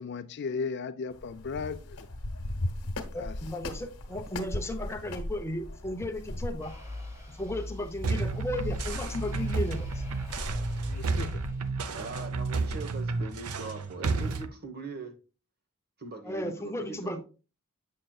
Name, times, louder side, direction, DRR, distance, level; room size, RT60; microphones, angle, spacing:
voice 1, 0.0-2.1 3.2-3.4 10.9-11.4, left 5 dB, 50° left, 0.4 m, -36 dB
sound 1, 1.1-11.1, left 1 dB, 85° left, 1.1 m, -39 dB
voice 2, 3.1-6.7 7.3-10.0 16.2-17.2, left 1 dB, 10° left, 0.7 m, -35 dB
sound 2, 6.6-12.1, left 2 dB, 15° right, 1.4 m, -40 dB
sound 3, 8.0-14.5, right 4 dB, 75° right, 0.7 m, -32 dB
voice 3, 11.9-15.2 16.0-17.2, right 3 dB, 45° right, 1.1 m, -41 dB
7.5 x 6.5 x 2.3 m
head